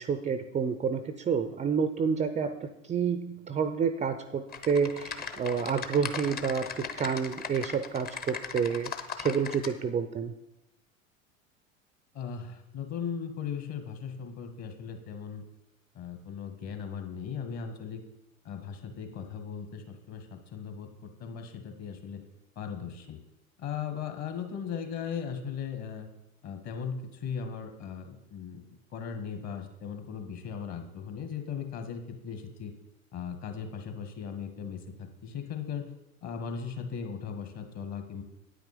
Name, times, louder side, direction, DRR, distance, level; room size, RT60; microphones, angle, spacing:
voice 1, 0.0-10.3, right 6 dB, 20° right, 10 dB, 0.5 m, -29 dB
Typing, 4.5-9.7, left 6 dB, 25° left, 0.9 m, -38 dB
voice 2, 12.1-15.4 15.9-18.0 18.4-22.2 22.5-23.2 23.6-26.1 26.4-28.6 28.9-32.7 33.1-35.9 36.2-38.2, left 7 dB, 40° left, 7 dB, 1.7 m, -38 dB
9.2 x 9.0 x 5.1 m, 0.92 s
hypercardioid pair, 90°, 40 cm